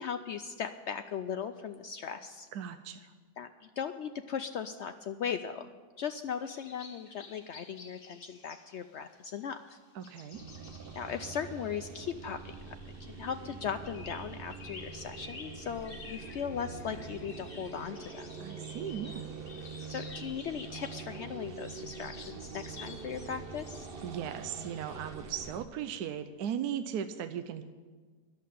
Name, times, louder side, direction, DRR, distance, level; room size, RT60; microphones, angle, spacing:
voice 1, 0.0-2.5 3.4-5.7 6.0-9.8 10.9-18.3 19.9-23.9, left 7 dB, 80° left, 8 dB, 0.6 m, -38 dB
voice 2, 2.5-3.1 9.9-10.4 18.4-19.3 24.0-27.6, right 9 dB, 75° right, 9 dB, 1.1 m, -37 dB
sound 1, 6.4-25.1, left 4 dB, 40° left, 1.2 m, -53 dB
sound 2, 10.3-25.7, right 5 dB, 55° right, 0.6 m, -45 dB
sound 3, 10.7-25.6, left 1 dB, ahead, 0.9 m, -62 dB
11.0 x 7.5 x 9.9 m, 1.5 s
omnidirectional pair, 1.7 m